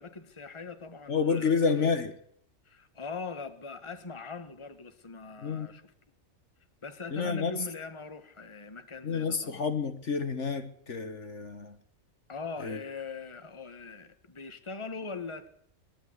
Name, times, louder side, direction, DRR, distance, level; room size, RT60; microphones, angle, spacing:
voice 1, 0.0-2.0 2.6-5.9 6.8-9.6 12.3-15.5, left 4 dB, 20° left, 1.5 m, -41 dB
voice 2, 1.1-2.1 5.4-5.7 7.1-7.5 9.0-11.8 12.6-12.8, left 5 dB, 60° left, 1.7 m, -29 dB
21.5 x 13.0 x 9.7 m
omnidirectional pair, 1.4 m